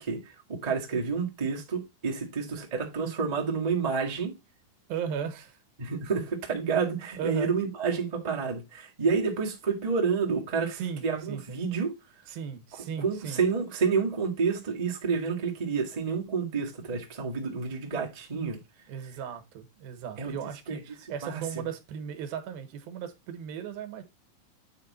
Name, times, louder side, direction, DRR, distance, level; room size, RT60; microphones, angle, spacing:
voice 1, 0.0-4.4 5.8-11.9 12.7-18.6 20.2-20.4 20.7-20.8 21.2-21.6, right 5 dB, 30° right, 0.7 m, -29 dB
voice 2, 4.9-5.6 7.2-7.5 10.7-11.0 11.3-11.6 12.3-13.4 18.9-24.0, right 8 dB, 85° right, 3.0 m, -36 dB
8.6 x 4.8 x 4.1 m
omnidirectional pair, 4.2 m